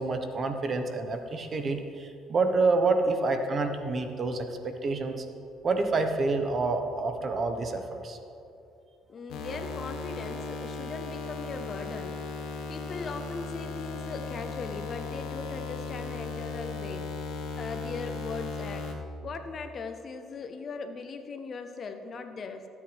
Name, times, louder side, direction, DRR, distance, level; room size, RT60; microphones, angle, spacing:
voice 1, 0.0-5.2 5.6-8.2, right 3 dB, 45° right, 6 dB, 1.3 m, -28 dB
voice 2, 9.1-12.2 12.7-17.1 17.6-18.9 19.2-22.7, left 4 dB, 45° left, 7 dB, 1.1 m, -39 dB
sound 1, 9.3-18.9, left 3 dB, 80° left, 1.5 m, -37 dB
19.0 x 8.5 x 3.5 m, 2.7 s
supercardioid pair, 80°, 0 cm